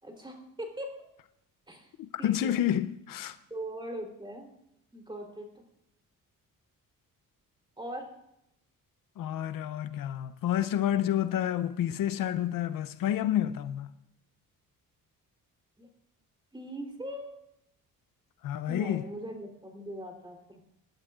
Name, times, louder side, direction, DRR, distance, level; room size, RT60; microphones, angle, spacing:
voice 1, 0.0-0.9 1.7-1.9 2.2-2.6 3.5-4.5 4.9-5.5 7.8-8.1 15.8-15.9 16.5-17.3 18.7-20.6, equal, 15° right, 3.5 m, -40 dB
voice 2, 2.0-3.4 9.2-13.9 18.4-19.1, left 11 dB, 70° left, 0.7 m, -29 dB
26.5 x 11.5 x 2.5 m
cardioid pair, 110°, 34 cm